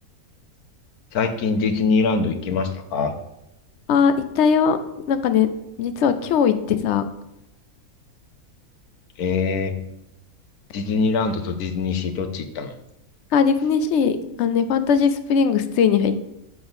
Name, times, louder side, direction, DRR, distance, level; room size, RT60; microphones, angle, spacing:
voice 1, 1.1-3.1 9.2-9.7 10.7-12.7, left 4 dB, 85° left, 8 dB, 1.4 m, -23 dB
voice 2, 3.9-4.8 5.1-5.5 5.8-7.0 13.3-16.2, left 6 dB, 60° left, 10 dB, 0.9 m, -19 dB
7.9 x 4.0 x 6.9 m, 0.87 s
omnidirectional pair, 1.5 m